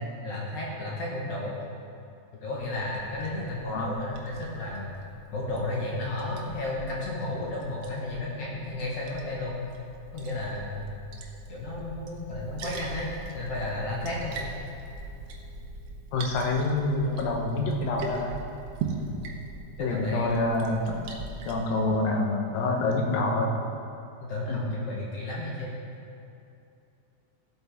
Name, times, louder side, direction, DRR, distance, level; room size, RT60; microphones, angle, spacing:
voice 1, 0.2-1.5 2.4-5.0 5.3-9.7 10.1-10.9 11.5-14.4 19.2-19.4 19.8-20.3 24.2-25.7, left 2 dB, 55° left, -4 dB, 2.0 m, -33 dB
Liquid, 2.6-21.5, right 3 dB, 80° right, 1.4 m, -41 dB
voice 2, 16.1-18.3 19.8-21.2 21.5-23.6 24.5-24.6, left 2 dB, 80° left, 1 dB, 2.7 m, -27 dB
13.5 x 8.2 x 3.5 m, 2.6 s
omnidirectional pair, 4.1 m